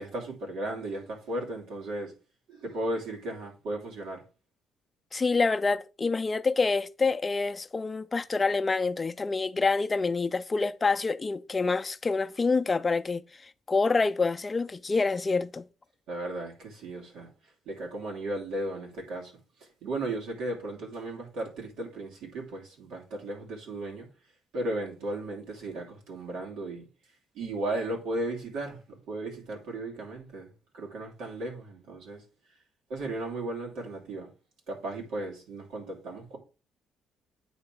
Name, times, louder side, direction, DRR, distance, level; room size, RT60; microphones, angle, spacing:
voice 1, 0.0-2.1 2.5-4.2 16.1-17.3 17.6-19.3 19.6-24.1 24.5-26.8 27.3-32.2 32.9-34.3 34.7-36.4, right 1 dB, 90° right, 3.1 m, -35 dB
voice 2, 5.1-15.7, left 4 dB, 25° left, 0.5 m, -27 dB
8.7 x 3.4 x 5.9 m
cardioid pair, 110°, 0 cm